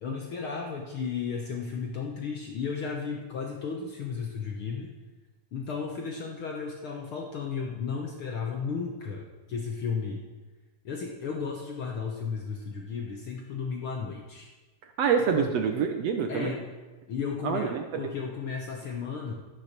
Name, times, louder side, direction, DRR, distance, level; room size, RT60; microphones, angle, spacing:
voice 1, 0.0-4.9 5.5-10.2 10.8-14.5 15.3-15.5 16.3-16.7 17.1-19.3, left 5 dB, 60° left, 1 dB, 1.5 m, -34 dB
voice 2, 15.0-16.5 17.4-18.0, right 6 dB, 65° right, 5 dB, 1.7 m, -26 dB
11.5 x 9.6 x 6.7 m, 1.2 s
omnidirectional pair, 3.6 m